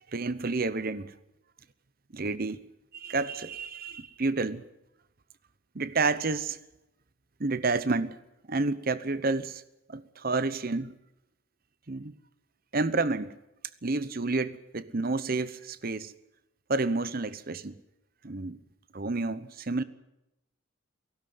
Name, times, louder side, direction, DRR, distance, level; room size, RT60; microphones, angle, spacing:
voice 1, 0.1-1.1 2.1-2.6 2.9-4.6 5.7-6.6 7.4-8.2 8.5-9.6 9.9-10.9 11.9-12.1 12.7-13.4 13.8-16.1 16.7-17.7 18.2-18.6 18.9-19.8, right 3 dB, 45° right, 15 dB, 0.9 m, -30 dB
18.0 x 16.0 x 9.5 m, 0.90 s
head